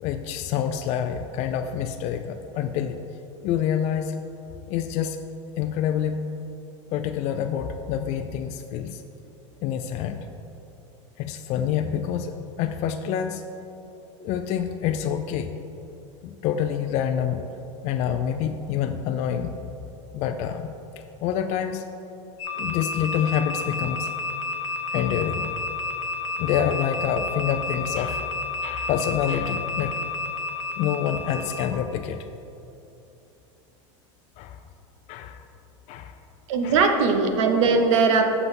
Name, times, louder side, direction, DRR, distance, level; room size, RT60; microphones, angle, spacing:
voice 1, 0.0-3.0 3.4-4.2 4.7-5.2 5.6-6.2 6.9-9.0 9.6-10.3 11.2-12.3 12.6-13.5 14.2-15.5 16.2-17.4 17.8-19.6 20.1-20.7 21.2-21.9 22.6-24.1 24.9-25.6 26.4-28.3 28.6-30.0 30.8-32.2 34.4-34.6 35.1-35.4 35.9-36.1 36.6-36.9, left 9 dB, 45° left, 7 dB, 0.4 m, -27 dB
sound 1, 22.4-31.7, left 4 dB, 85° left, 1.0 m, -31 dB
voice 2, 36.5-38.3, right 4 dB, 80° right, 5 dB, 0.9 m, -20 dB
6.9 x 6.0 x 5.3 m, 2.9 s
supercardioid pair, 120°, 16 cm